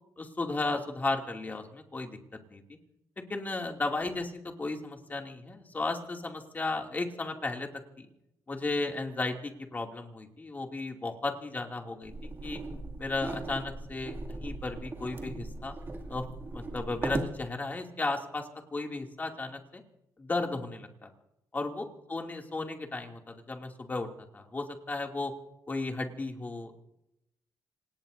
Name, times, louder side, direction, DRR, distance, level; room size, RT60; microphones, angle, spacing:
voice 1, 0.2-2.2 2.5-2.6 3.3-7.7 8.0-8.1 8.5-12.6 13.0-15.7 16.1-16.2 16.5-19.8 20.2-21.1 21.5-24.1 24.3-25.3 25.7-26.7, left 3 dB, 25° left, 2 dB, 2.6 m, -34 dB
sound 1, 12.0-17.4, right 2 dB, 30° right, 2.4 m, -38 dB
27.0 x 18.5 x 2.7 m, 0.84 s
cardioid pair, 115°, 7 cm